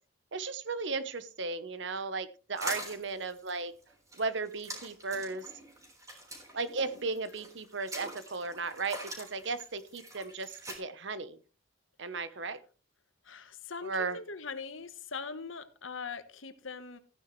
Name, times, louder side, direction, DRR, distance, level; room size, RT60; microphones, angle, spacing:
voice 1, 0.3-3.7 4.2-5.5 6.5-11.4 12.0-12.6 13.8-14.2, right 4 dB, 60° right, 14 dB, 1.0 m, -35 dB
sound 1, 2.6-10.8, right 1 dB, 15° right, 3.6 m, -44 dB
voice 2, 13.2-17.0, left 4 dB, 75° left, 11 dB, 1.3 m, -41 dB
14.5 x 9.9 x 3.2 m, 0.35 s
head